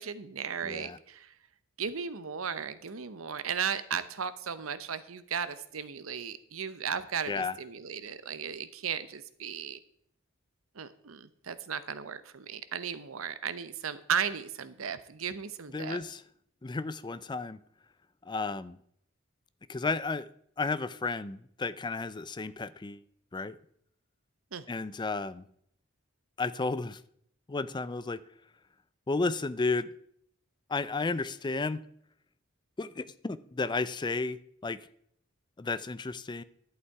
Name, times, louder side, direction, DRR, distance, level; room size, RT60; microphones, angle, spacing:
voice 1, 0.0-1.3 1.8-9.8 10.8-16.0 24.5-24.6, right 7 dB, 85° right, 0.8 m, -35 dB
voice 2, 0.6-1.0 7.3-7.6 15.7-16.2 16.6-17.6 18.3-18.8 19.7-20.3 20.6-23.0 23.3-23.6 24.7-25.4 26.4-27.0 27.5-28.2 29.1-29.9 30.7-31.8 32.8-34.8 35.6-36.4, left 3 dB, 20° left, 0.4 m, -33 dB
11.5 x 8.2 x 4.7 m
head